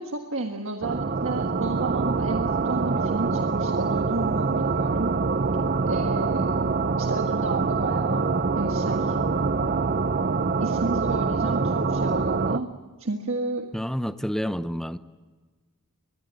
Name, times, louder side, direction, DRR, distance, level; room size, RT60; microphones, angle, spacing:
voice 1, 0.0-5.1 5.9-6.6 7.0-8.3 8.6-9.2 10.6-12.7 13.0-13.7, right 2 dB, 60° right, 4 dB, 1.6 m, -31 dB
sound 1, 0.8-12.6, right 4 dB, 40° right, 0.7 m, -25 dB
voice 2, 13.7-15.0, equal, ahead, 12 dB, 0.7 m, -29 dB
24.0 x 21.0 x 9.3 m, 1.4 s
head